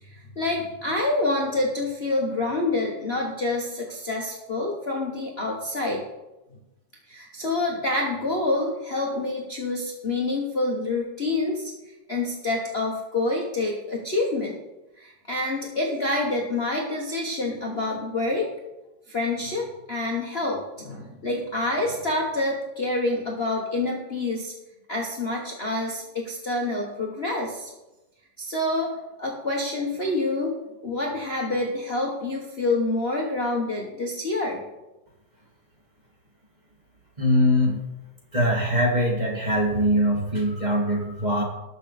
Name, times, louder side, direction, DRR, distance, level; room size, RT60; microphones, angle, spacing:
voice 1, 0.0-6.0 7.1-11.7 12.1-14.6 15.0-18.5 19.1-24.5 24.9-27.7 28.4-28.9 29.2-30.5 30.8-34.6, left 2 dB, 30° left, -2 dB, 1.4 m, -27 dB
voice 2, 37.2-37.8 38.3-41.4, equal, 20° right, -2 dB, 2.4 m, -22 dB
19.5 x 6.7 x 4.3 m, 1.0 s
omnidirectional pair, 2.4 m